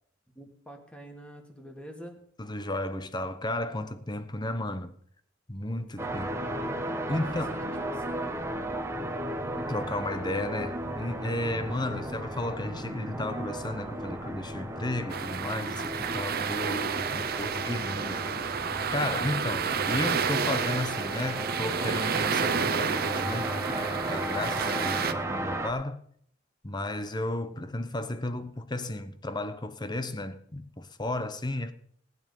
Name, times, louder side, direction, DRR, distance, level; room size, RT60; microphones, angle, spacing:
voice 1, 0.3-2.2 5.7-6.2 7.0-8.4 27.5-27.8, equal, 5° left, 2.3 m, -47 dB
voice 2, 2.4-5.0 5.5-6.4 7.1-7.6 9.6-18.2 18.9-26.0 26.6-31.7, left 1 dB, 25° left, 1.0 m, -33 dB
sound 1, 6.0-25.7, right 1 dB, 15° right, 1.6 m, -35 dB
sound 2, 15.1-25.1, right 6 dB, 55° right, 0.9 m, -30 dB
18.5 x 9.5 x 5.5 m
head